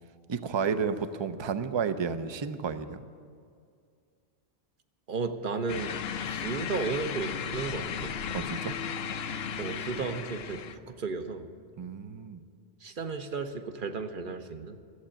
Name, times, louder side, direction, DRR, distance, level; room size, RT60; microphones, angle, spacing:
voice 1, 0.3-3.1 8.3-8.7 11.8-12.4, right 6 dB, 35° right, 11 dB, 0.5 m, -31 dB
voice 2, 5.1-5.9 6.2-8.1 9.6-11.5 12.8-14.8, right 4 dB, 55° right, 7 dB, 1.0 m, -34 dB
sound 1, 5.7-10.8, left 7 dB, 70° left, 0.8 m, -35 dB
14.5 x 8.0 x 8.6 m, 2.2 s
omnidirectional pair, 1.1 m